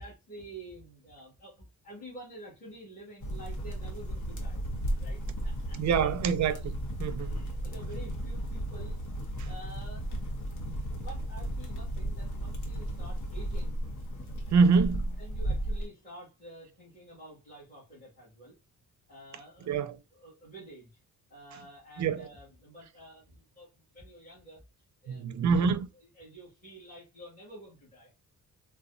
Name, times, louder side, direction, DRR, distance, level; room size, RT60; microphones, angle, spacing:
voice 1, 0.0-4.6 5.0-6.1 7.2-9.0 9.5-13.8 14.7-14.8 15.2-18.6 19.1-19.8 20.1-20.9 21.3-24.6 25.0-25.8 26.1-28.2, right 1 dB, 25° left, 1.7 m, -49 dB
sound 1, 3.2-15.9, right 1 dB, 55° left, 0.9 m, -35 dB
voice 2, 5.8-7.3 14.5-15.0 19.7-20.0 22.0-22.3 25.1-25.9, right 5 dB, 55° right, 0.5 m, -25 dB
3.9 x 2.2 x 2.6 m
wide cardioid pair, 140°, 35 cm